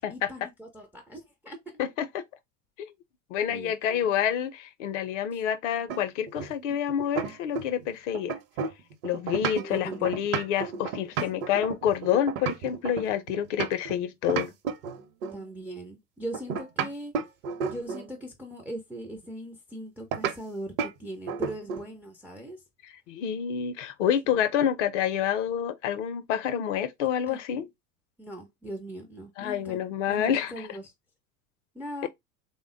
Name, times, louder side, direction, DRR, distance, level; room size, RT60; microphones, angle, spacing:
voice 1, 0.1-1.8 3.5-4.1 9.5-10.2 15.3-17.1 17.6-22.6 24.2-24.4 27.3-27.4 28.2-29.8 30.1-30.9 31.7-32.1, right 1 dB, 5° right, 0.3 m, -40 dB
voice 2, 1.8-2.2 2.8-2.9 3.3-8.3 9.0-14.5 22.8-27.7 29.4-30.5, left 9 dB, 50° left, 0.6 m, -28 dB
sound 1, 5.9-7.9 8.1-14.0 14.3-15.4 16.3-18.1 20.1-20.4 20.8-21.0 21.3-21.9, right 6 dB, 50° right, 0.8 m, -32 dB
3.5 x 2.1 x 3.7 m
figure-of-eight pair, 75°, 47 cm